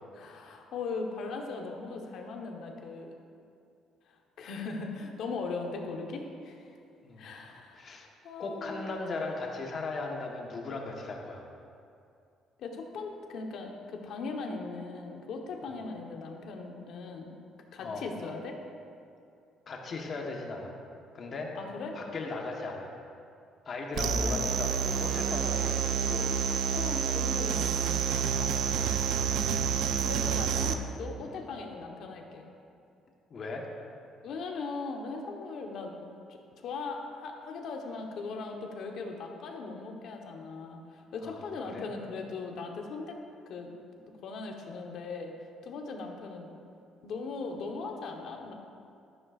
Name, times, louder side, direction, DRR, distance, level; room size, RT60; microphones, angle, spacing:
voice 1, 0.1-3.1 4.1-6.8 7.2-8.0 8.2-8.9 12.6-17.3 17.7-18.6 21.5-22.0 23.9-24.6 25.6-25.7 26.2-27.6 29.5-29.6 30.0-32.4 34.2-35.9 36.3-43.2 43.5-43.7 44.2-45.3 45.6-46.5 47.0-48.5, left 4 dB, 60° left, 2 dB, 1.2 m, -39 dB
voice 2, 7.7-8.1 8.4-11.4 15.6-15.7 17.8-18.0 19.7-20.7 21.1-21.5 21.9-22.9 23.6-26.3 28.3-28.5 30.4-30.5 31.3-31.5 33.3-33.6 41.2-41.4 41.7-41.9, left 3 dB, 35° left, 0 dB, 1.3 m, -37 dB
sound 1, 24.0-30.7, right 7 dB, 70° right, 0.6 m, -28 dB
13.0 x 11.0 x 2.5 m, 2.5 s
cardioid pair, 160°, 0 cm